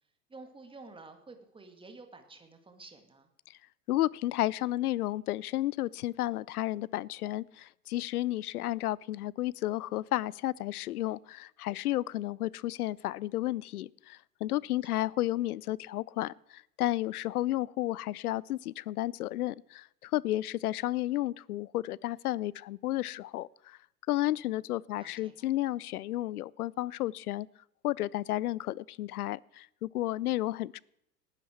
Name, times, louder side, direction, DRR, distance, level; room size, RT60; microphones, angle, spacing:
voice 1, 0.3-3.3 14.8-15.0 25.0-25.5, right 3 dB, 10° right, 6 dB, 2.2 m, -51 dB
voice 2, 3.9-23.8 24.1-27.5 27.8-30.8, left 15 dB, 70° left, 26 dB, 0.5 m, -32 dB
18.5 x 11.5 x 4.6 m, 0.79 s
figure-of-eight pair, 90°, 47 cm